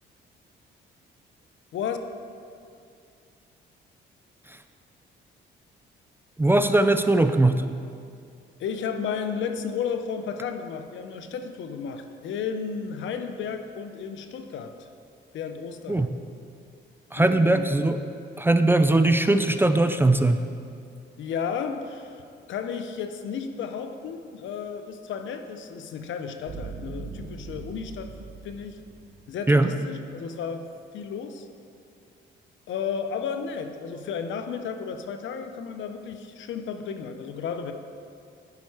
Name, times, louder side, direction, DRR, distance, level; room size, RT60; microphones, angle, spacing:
voice 1, 6.4-7.6 15.9-16.1 17.1-18.0 18.4-20.4 29.5-29.7, right 2 dB, 10° right, 9 dB, 0.3 m, -20 dB
voice 2, 8.6-14.9 15.3-16.0 17.2-17.7 21.2-22.2 22.5-28.1 28.4-28.8 29.3-30.7 30.9-31.5 32.7-37.7, left 6 dB, 70° left, 7 dB, 0.7 m, -33 dB
sound 1, 26.5-29.7, right 4 dB, 45° right, 0.9 m, -40 dB
10.5 x 5.3 x 4.8 m, 2.4 s
cardioid pair, 90°, 20 cm